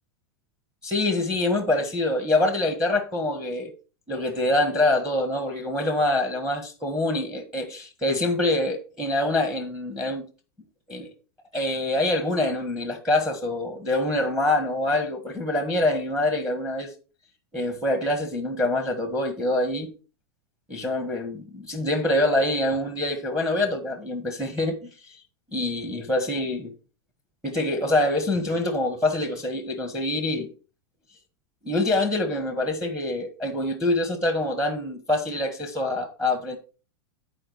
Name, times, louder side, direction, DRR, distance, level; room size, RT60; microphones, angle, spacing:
voice 1, 0.8-3.7 4.1-10.3 10.9-11.1 11.5-16.9 17.5-19.9 20.7-25.2 25.5-26.7 27.4-30.5 31.6-36.6, left 1 dB, 5° right, 1.4 m, -25 dB
10.0 x 4.7 x 4.5 m
hypercardioid pair, 130°, 13 cm